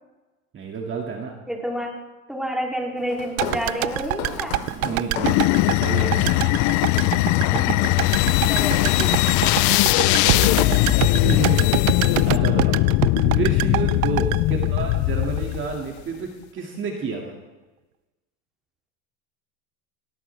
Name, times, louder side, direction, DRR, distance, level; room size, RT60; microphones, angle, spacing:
voice 1, 0.5-1.4 4.5-5.4 5.7-6.4 10.0-12.8 13.2-17.4, right 4 dB, 30° right, 1 dB, 2.2 m, -30 dB
voice 2, 1.5-1.9 2.3-4.6 7.5-7.9 8.5-9.3 14.5-14.6, equal, ahead, -1 dB, 3.0 m, -29 dB
Walk footsteps, 3.1-9.0 9.5-9.8 10.1-10.9, left 8 dB, 75° left, 3.3 m, -35 dB
sound 1, 3.4-15.6 15.8-15.9, right 20 dB, 80° right, 0.5 m, -27 dB
sound 2, 5.2-15.8, left 19 dB, 45° left, 0.5 m, -20 dB
19.0 x 18.0 x 3.4 m, 1.2 s
supercardioid pair, 125°, 41 cm